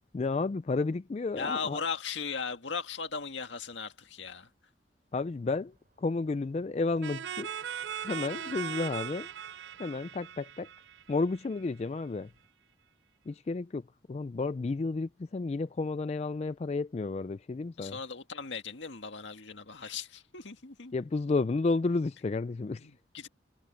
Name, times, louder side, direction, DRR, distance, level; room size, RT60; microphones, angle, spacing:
voice 1, 0.1-1.8 5.1-7.5 8.0-9.3 9.8-10.7 11.1-12.3 13.3-13.8 14.1-18.0 20.9-22.9, left 3 dB, 35° left, 0.3 m, -31 dB
voice 2, 1.4-4.5 17.8-20.9 22.7-23.3, left 5 dB, 80° left, 1.8 m, -37 dB
Car, 5.1-12.5, right 5 dB, 45° right, 4.2 m, -60 dB
sound 1, 7.0-11.6, right 9 dB, 70° right, 0.4 m, -39 dB
head